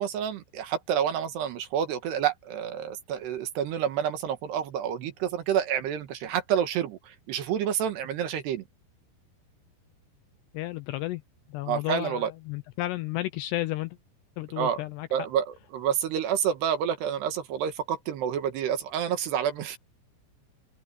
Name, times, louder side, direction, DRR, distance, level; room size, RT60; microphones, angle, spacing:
voice 1, 0.0-8.6 11.7-12.3 14.6-14.8 15.1-15.4 15.7-19.8, right 9 dB, 70° right, 3.4 m, -28 dB
voice 2, 10.5-11.2 11.5-14.0 14.4-15.1, left 17 dB, 80° left, 2.5 m, -32 dB
open air
omnidirectional pair, 5.4 m